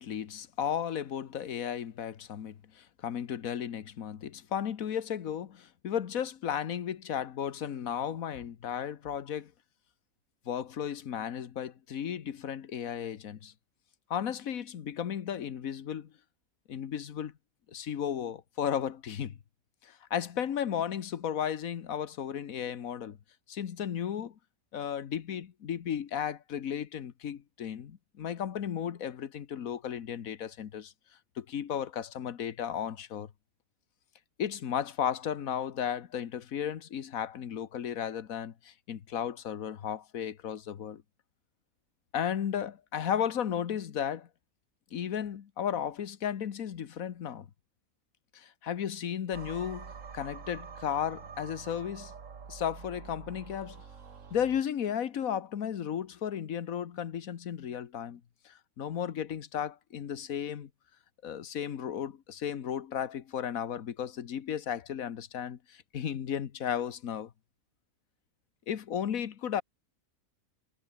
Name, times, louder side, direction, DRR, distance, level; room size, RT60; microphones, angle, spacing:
voice 1, 0.0-9.5 10.5-13.5 14.1-16.1 16.7-17.3 17.7-19.4 19.8-23.2 23.5-24.3 24.7-30.9 31.4-33.3 34.4-41.0 42.1-44.3 44.9-47.5 48.3-52.1 52.5-53.8 54.3-60.7 61.2-67.3 68.7-69.6, left 9 dB, 75° left, 1.6 m, -34 dB
sound 1, 49.3-54.6, right 6 dB, 65° right, 2.0 m, -46 dB
omnidirectional pair, 1.5 m